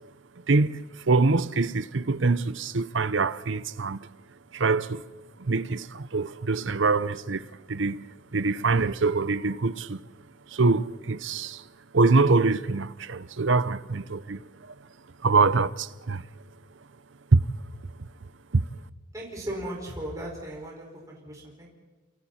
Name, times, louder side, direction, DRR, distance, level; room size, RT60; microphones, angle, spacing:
voice 1, 0.5-4.0 4.5-5.0 5.4-8.1 8.3-10.0 10.5-11.6 11.9-14.7 15.2-16.2 17.3-17.5 18.5-18.6, right 3 dB, 65° right, 0.7 m, -24 dB
voice 2, 19.1-21.7, right 1 dB, 15° right, 5.5 m, -37 dB
29.0 x 28.0 x 4.4 m
head